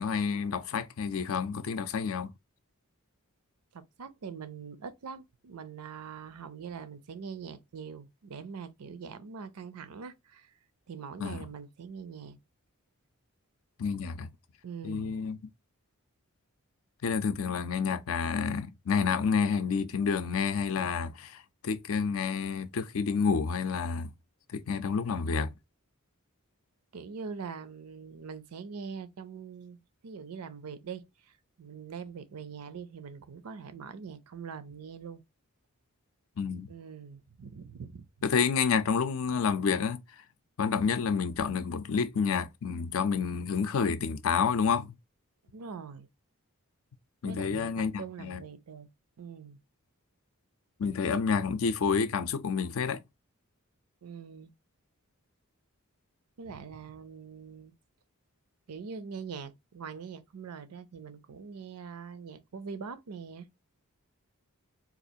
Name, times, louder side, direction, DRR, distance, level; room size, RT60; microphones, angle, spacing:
voice 1, 0.0-2.3 11.2-11.4 13.8-14.3 14.8-15.4 17.0-24.1 24.5-25.5 36.4-36.7 38.2-40.0 40.6-44.9 47.2-48.4 50.8-53.0, left 5 dB, 65° left, 0.4 m, -29 dB
voice 2, 3.7-10.5 10.9-12.4 14.6-15.2 26.9-35.2 36.7-38.0 45.4-46.1 47.2-48.9 49.2-49.6 54.0-54.5 56.4-57.7 58.7-63.5, right 6 dB, 90° right, 0.5 m, -43 dB
4.1 x 2.4 x 2.7 m
head